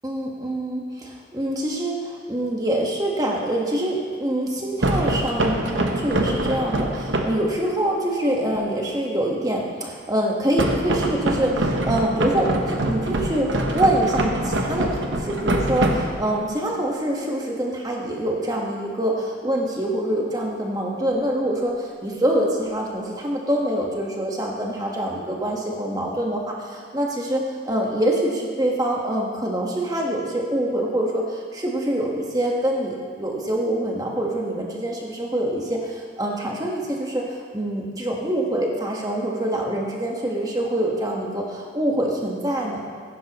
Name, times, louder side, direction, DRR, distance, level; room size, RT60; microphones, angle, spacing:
voice 1, 0.0-42.8, right 1 dB, 20° right, -1 dB, 1.3 m, -25 dB
sound 1, 4.8-7.5 10.6-16.5, right 1 dB, 80° right, 1.0 m, -24 dB
15.5 x 10.5 x 3.0 m, 2.2 s
head